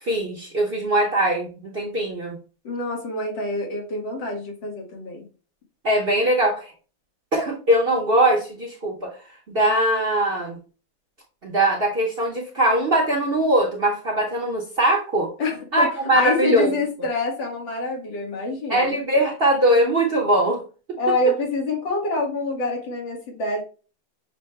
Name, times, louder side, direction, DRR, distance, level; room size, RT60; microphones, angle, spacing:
voice 1, 0.0-2.4 5.8-6.7 7.3-9.1 9.5-10.6 11.4-15.3 15.7-16.7 18.7-20.6, right 1 dB, 40° right, -1 dB, 0.9 m, -21 dB
voice 2, 2.6-5.3 15.4-18.9 21.0-23.6, left 2 dB, 80° left, 0 dB, 2.2 m, -26 dB
6.6 x 2.2 x 3.2 m, 0.35 s
omnidirectional pair, 2.1 m